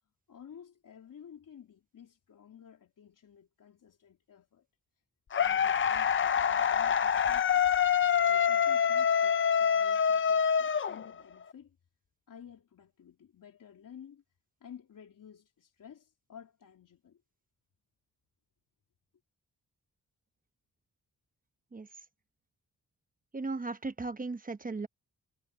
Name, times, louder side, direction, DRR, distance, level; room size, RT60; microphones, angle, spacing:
voice 1, 0.3-4.7 5.4-7.9 8.3-11.8 12.3-14.2 14.6-17.2, left 8 dB, 80° left, 3.4 m, -53 dB
sound 1, 5.3-11.4, left 7 dB, 40° left, 0.5 m, -26 dB
voice 2, 23.3-24.9, right 3 dB, 25° right, 0.9 m, -36 dB
wide cardioid pair, 130°, 33 cm